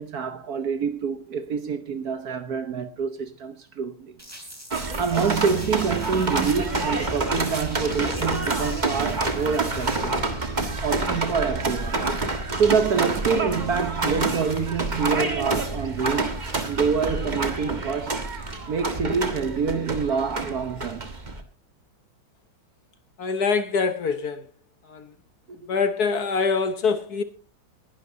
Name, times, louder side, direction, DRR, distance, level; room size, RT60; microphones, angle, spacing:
voice 1, 0.0-4.1 5.0-10.1 10.8-12.1 12.6-18.2 18.7-21.1 25.5-25.6, right 6 dB, 55° right, 1.2 m, -26 dB
sound 1, 4.2-10.0, equal, 5° right, 3.1 m, -42 dB
sound 2, 4.7-21.4, right 3 dB, 25° right, 1.4 m, -28 dB
voice 2, 23.2-24.4 24.8-25.1 25.7-27.2, left 5 dB, 55° left, 1.3 m, -24 dB
20.0 x 11.5 x 2.7 m
omnidirectional pair, 2.2 m